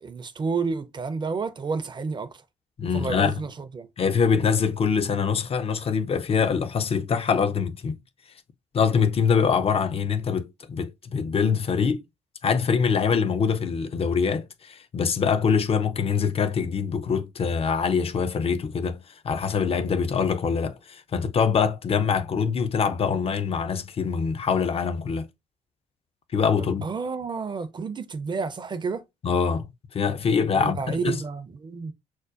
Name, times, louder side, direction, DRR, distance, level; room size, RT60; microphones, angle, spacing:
voice 1, 0.0-2.3 2.9-3.9 26.6-29.0 30.5-31.9, right 4 dB, 25° right, 0.6 m, -30 dB
voice 2, 2.8-3.4 4.0-8.0 8.7-12.0 12.4-25.3 26.3-26.9 29.2-31.2, left 6 dB, 35° left, 0.5 m, -24 dB
6.1 x 2.1 x 2.4 m
hypercardioid pair, 50°, 17 cm